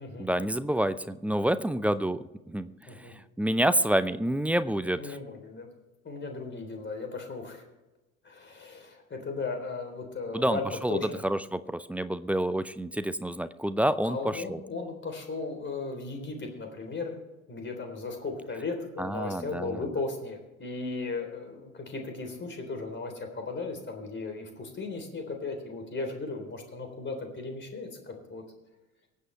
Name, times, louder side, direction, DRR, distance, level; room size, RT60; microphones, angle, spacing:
voice 1, 0.2-2.7 3.0-5.1 10.3-14.6 19.0-19.8, right 1 dB, 5° right, 14 dB, 0.6 m, -28 dB
voice 2, 5.0-5.7 6.0-7.6 8.2-11.2 14.0-17.2 17.5-28.4, left 3 dB, 25° left, 4 dB, 3.7 m, -36 dB
24.5 x 8.5 x 3.3 m, 1.1 s
figure-of-eight pair, 65°, 42 cm